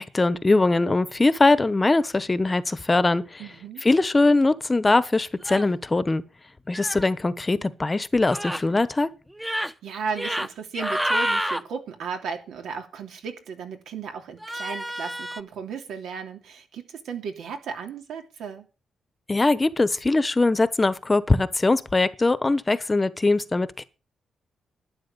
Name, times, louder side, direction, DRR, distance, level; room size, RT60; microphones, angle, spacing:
voice 1, 0.0-3.4 3.8-6.2 6.7-9.1 19.3-23.8, left 2 dB, 20° left, 1.0 m, -21 dB
voice 2, 3.4-3.8 9.5-18.7, right 6 dB, 85° right, 3.0 m, -35 dB
sound 1, 5.4-5.7 6.7-7.0 8.3-8.6 9.3-9.7 10.1-10.5 10.7-11.6 14.4-15.4, equal, 5° right, 0.9 m, -28 dB
12.0 x 9.7 x 6.8 m
cardioid pair, 100°, 0 cm